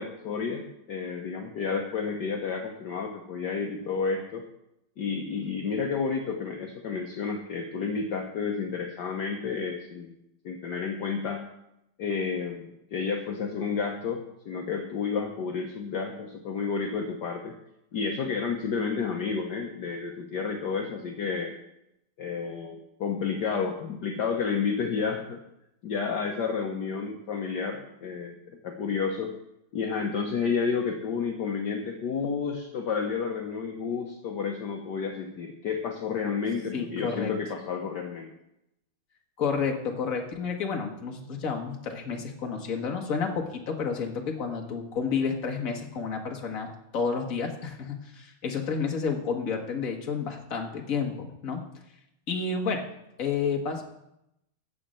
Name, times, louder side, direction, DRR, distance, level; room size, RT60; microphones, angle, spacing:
voice 1, 0.0-4.4 5.0-10.1 10.4-11.4 12.0-17.5 17.9-21.5 22.2-25.4 25.8-28.4 28.6-29.3 29.7-38.3, left 5 dB, 60° left, 2 dB, 1.5 m, -31 dB
voice 2, 36.7-37.3 39.4-51.6 52.3-52.8 53.2-53.8, left 5 dB, 40° left, 2 dB, 1.7 m, -30 dB
13.5 x 5.5 x 7.6 m, 0.83 s
omnidirectional pair, 2.3 m